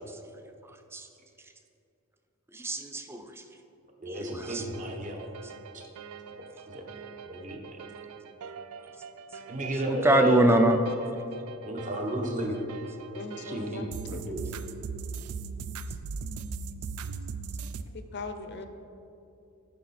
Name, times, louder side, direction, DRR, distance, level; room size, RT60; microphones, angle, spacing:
voice 1, 2.5-3.3 4.1-4.6 9.9-10.8 14.1-14.2, right 1 dB, 10° right, 6 dB, 0.4 m, -24 dB
voice 2, 4.0-5.2 5.7-5.8 6.7-6.8 7.2-7.8 9.5-10.4 11.6-12.6 13.5-13.9 14.3-14.5, right 1 dB, 35° right, 1 dB, 0.9 m, -32 dB
sound 1, 4.1-17.8, right 5 dB, 85° right, 0.4 m, -41 dB
voice 3, 13.1-14.4 17.9-18.7, left 3 dB, 50° left, 8 dB, 0.6 m, -40 dB
10.0 x 4.9 x 4.1 m, 2.7 s
head